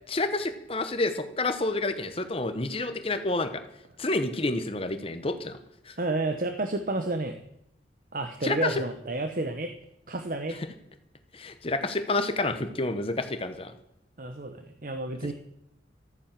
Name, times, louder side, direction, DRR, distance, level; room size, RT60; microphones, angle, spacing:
voice 1, 0.1-3.6 4.0-5.6 5.9-6.0 8.4-8.8 11.3-13.7, left 2 dB, 30° left, 9 dB, 1.0 m, -29 dB
voice 2, 6.0-7.4 8.1-9.7 10.1-10.6 14.2-15.3, right 2 dB, 50° right, 7 dB, 1.0 m, -30 dB
13.5 x 9.6 x 7.4 m, 0.79 s
head